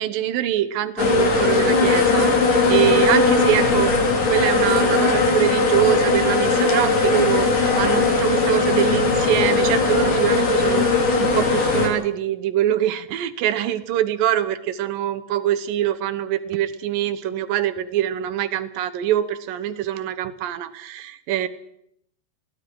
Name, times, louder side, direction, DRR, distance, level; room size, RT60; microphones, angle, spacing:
voice 1, 0.0-4.0 4.3-10.9 11.2-21.5, right 11 dB, 70° right, 13 dB, 2.4 m, -24 dB
sound 1, 1.0-11.9, left 3 dB, 50° left, 4.8 m, -19 dB
29.5 x 20.5 x 4.7 m, 0.73 s
omnidirectional pair, 4.9 m